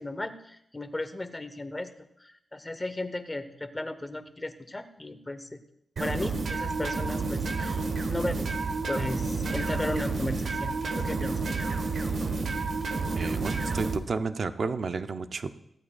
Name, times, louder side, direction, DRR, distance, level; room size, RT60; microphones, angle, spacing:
voice 1, 0.0-1.9 2.2-5.6 6.0-11.4, left 2 dB, 15° left, 9 dB, 0.8 m, -35 dB
sound 1, 6.0-14.0, right 3 dB, 65° right, 1.4 m, -30 dB
voice 2, 13.1-15.5, right 4 dB, 50° right, 10 dB, 0.5 m, -31 dB
17.5 x 13.0 x 2.3 m, 0.77 s
wide cardioid pair, 165°, 0 cm